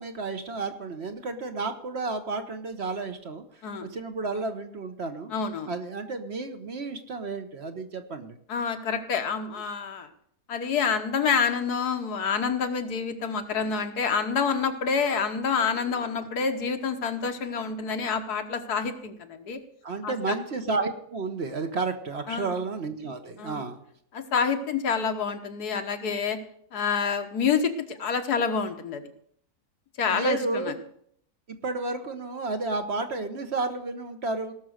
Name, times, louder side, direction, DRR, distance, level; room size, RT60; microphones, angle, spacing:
voice 1, 0.0-5.3 5.7-8.4 15.9-16.0 19.8-23.8 30.1-30.8 31.5-34.5, right 3 dB, 45° right, 7 dB, 1.1 m, -32 dB
voice 2, 5.3-5.7 8.5-10.1 10.5-19.6 20.0-20.4 22.3-22.6 23.4-23.6 24.1-26.4 26.7-29.0 30.0-30.7, left 6 dB, 85° left, 6 dB, 1.7 m, -27 dB
18.0 x 6.3 x 6.4 m, 0.66 s
omnidirectional pair, 1.7 m